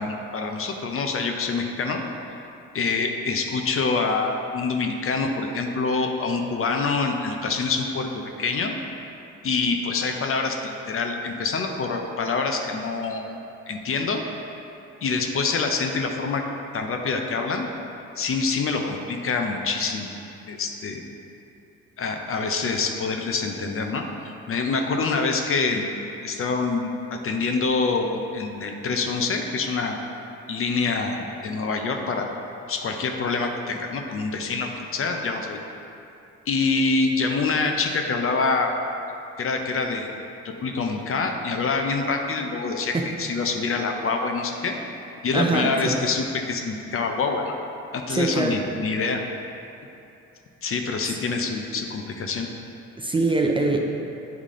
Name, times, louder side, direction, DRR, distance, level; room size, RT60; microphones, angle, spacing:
voice 1, 0.0-2.0 2.7-8.1 8.4-8.7 9.4-13.4 13.7-14.2 15.0-16.4 16.7-17.7 18.2-20.1 20.5-21.0 22.0-24.0 24.5-25.9 26.2-30.0 30.5-32.3 32.7-35.6 36.5-38.7 39.4-40.1 40.4-44.8 45.2-47.5 47.9-49.2 50.6-52.5, left 4 dB, 45° left, 3 dB, 0.6 m, -26 dB
voice 2, 45.3-46.0 48.1-48.5 53.0-53.8, right 2 dB, 15° right, 1 dB, 0.5 m, -23 dB
8.4 x 3.6 x 3.7 m, 2.8 s
cardioid pair, 90°, 30 cm